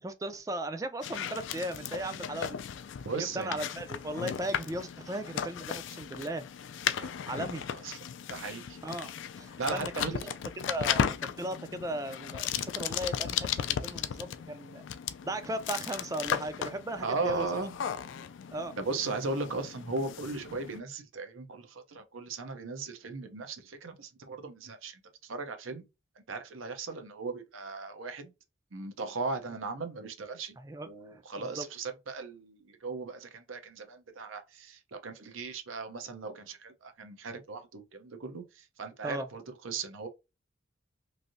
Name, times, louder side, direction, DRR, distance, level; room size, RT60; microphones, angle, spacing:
voice 1, 0.0-2.6 3.1-6.4 7.3-7.6 8.8-9.1 9.4-10.3 10.7-14.9 15.2-17.5 18.5-18.8 30.6-31.7 39.0-39.3, right 1 dB, 15° right, 0.4 m, -37 dB
sound 1, 1.0-20.8, left 8 dB, 70° left, 0.3 m, -36 dB
voice 2, 3.0-3.7 7.0-7.3 7.8-8.0 8.3-8.8 9.6-10.3 17.0-17.7 18.8-25.8 26.3-28.3 28.7-30.6 30.8-40.1, right 3 dB, 85° right, 0.7 m, -37 dB
3.2 x 2.6 x 2.5 m
head